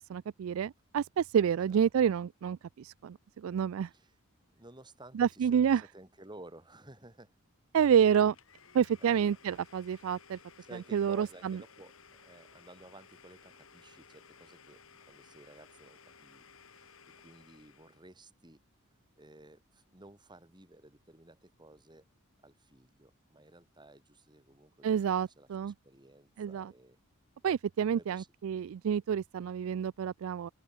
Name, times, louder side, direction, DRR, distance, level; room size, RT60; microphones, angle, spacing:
voice 1, 0.1-3.2 3.4-3.9 5.2-5.8 7.7-8.3 8.7-10.4 10.9-11.6 24.8-25.7 26.4-26.7 27.4-30.5, right 8 dB, 65° right, 0.3 m, -28 dB
voice 2, 1.5-1.9 3.9-4.2 4.5-7.4 9.0-9.4 10.6-14.8 15.1-18.6 19.2-22.1 22.4-27.0 27.9-28.3, right 2 dB, 20° right, 3.5 m, -55 dB
Domestic sounds home sounds, 8.1-18.1, left 6 dB, 65° left, 4.1 m, -58 dB
open air
head